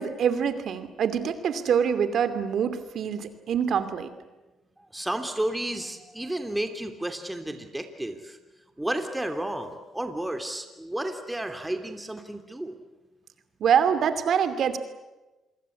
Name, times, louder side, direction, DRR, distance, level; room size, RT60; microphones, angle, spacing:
voice 1, 0.0-4.1 13.6-14.8, right 7 dB, 65° right, 11 dB, 2.7 m, -25 dB
voice 2, 4.9-8.4 8.8-12.8, right 1 dB, 10° right, 6 dB, 2.9 m, -32 dB
27.5 x 22.5 x 8.4 m, 1.1 s
cardioid pair, 90°, 0 cm